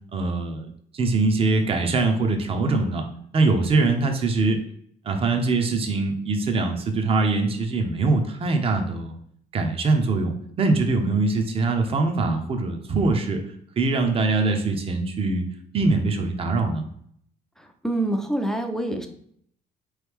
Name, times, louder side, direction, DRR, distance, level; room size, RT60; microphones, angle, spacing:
voice 1, 0.1-3.0 3.3-4.6 5.0-9.2 9.5-13.4 13.8-15.4 15.7-16.8, right 3 dB, 35° right, 5 dB, 0.7 m, -23 dB
voice 2, 2.6-2.9 17.6-19.1, right 1 dB, 5° left, 4 dB, 0.5 m, -27 dB
4.0 x 3.2 x 3.5 m, 0.65 s
cardioid pair, 110°, 17 cm